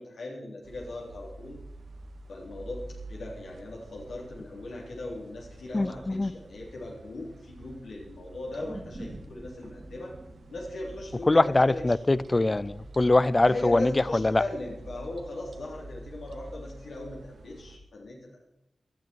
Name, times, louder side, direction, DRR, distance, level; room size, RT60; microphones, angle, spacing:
voice 1, 0.0-1.6 2.3-2.8 3.1-10.2 10.5-11.8 13.4-18.4, left 2 dB, 90° left, -3 dB, 3.7 m, -38 dB
sound 1, 0.6-17.8, right 2 dB, 75° right, 1.7 m, -47 dB
voice 2, 5.7-6.3 11.3-14.4, left 2 dB, 25° left, 19 dB, 0.5 m, -23 dB
sound 2, 8.5-13.0 13.4-13.5, right 1 dB, 25° right, 2.1 m, -47 dB
18.5 x 12.0 x 4.6 m, 0.84 s
wide cardioid pair, 95°, 0 cm